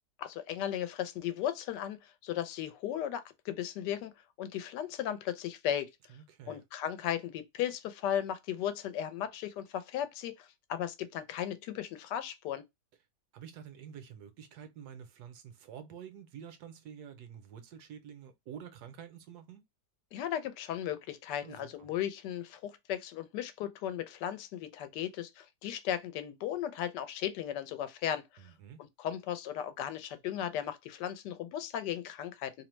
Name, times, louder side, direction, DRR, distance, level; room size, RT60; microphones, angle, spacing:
voice 1, 0.2-4.1 4.4-5.9 6.5-12.6 20.1-28.5 29.0-32.5, left 10 dB, 85° left, 1.2 m, -36 dB
voice 2, 6.1-6.6 13.3-19.6 21.4-21.9 28.4-28.8, right 8 dB, 75° right, 1.1 m, -48 dB
2.9 x 2.0 x 3.0 m
omnidirectional pair, 1.8 m